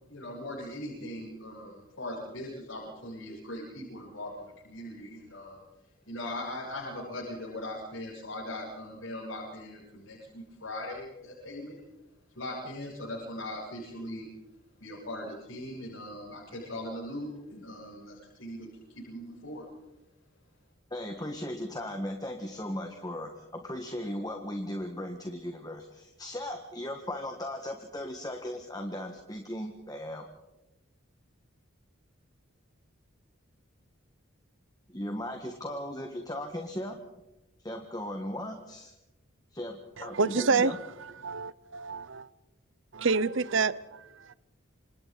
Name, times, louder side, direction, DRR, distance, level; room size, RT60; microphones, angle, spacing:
voice 1, 0.1-5.6 6.1-11.8 12.3-14.3 14.8-19.6, left 1 dB, 75° left, 7.8 m, -40 dB
voice 2, 20.9-30.3 34.9-37.0 37.6-38.9 39.5-40.8, left 1 dB, 20° left, 1.6 m, -37 dB
voice 3, 40.0-40.8 41.2-42.3 42.9-44.3, right 4 dB, 65° right, 0.8 m, -28 dB
28.5 x 26.0 x 4.1 m
head